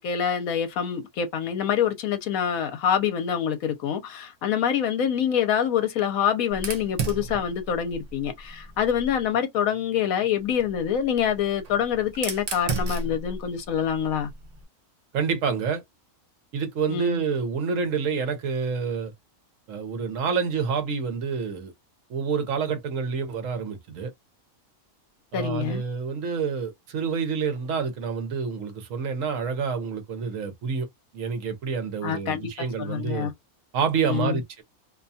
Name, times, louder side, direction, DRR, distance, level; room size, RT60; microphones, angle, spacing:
voice 1, 0.0-14.3 16.9-17.2 25.3-25.8 32.0-33.3 34.1-34.4, left 8 dB, 75° left, 1.0 m, -26 dB
Fire, 6.5-9.3 10.4-14.6, right 3 dB, 85° right, 0.3 m, -35 dB
voice 2, 15.1-15.8 16.5-19.1 19.7-21.7 22.1-24.1 25.3-30.9 31.1-33.3 33.7-34.6, right 5 dB, 65° right, 1.0 m, -28 dB
2.7 x 2.2 x 2.6 m
omnidirectional pair, 1.6 m